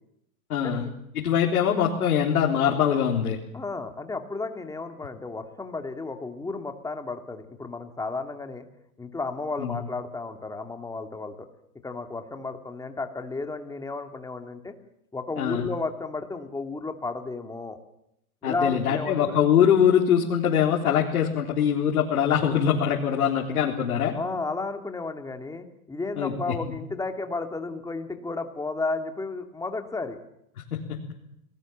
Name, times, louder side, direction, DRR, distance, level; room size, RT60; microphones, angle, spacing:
voice 1, 0.5-0.9 1.1-3.4 9.6-9.8 15.4-15.7 18.4-24.1 26.2-26.3 30.7-31.0, left 8 dB, 80° left, -1 dB, 4.1 m, -23 dB
voice 2, 3.5-8.7 9.0-11.5 11.8-14.7 15.1-17.8 18.4-19.4 24.1-30.2, left 3 dB, 10° left, 6 dB, 2.6 m, -33 dB
30.0 x 19.5 x 7.5 m, 0.82 s
hypercardioid pair, 125°, 44 cm